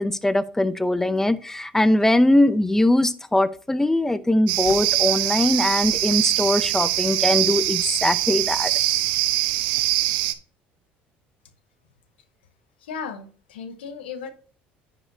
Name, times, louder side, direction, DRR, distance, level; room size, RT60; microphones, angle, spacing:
voice 1, 0.0-8.7, left 1 dB, 5° left, 14 dB, 0.7 m, -21 dB
sound 1, 4.5-10.3, right 15 dB, 75° right, 0.7 m, -23 dB
voice 2, 12.8-14.3, left 6 dB, 85° left, 9 dB, 1.1 m, -35 dB
10.5 x 5.5 x 2.7 m, 0.40 s
hypercardioid pair, 70°, 5 cm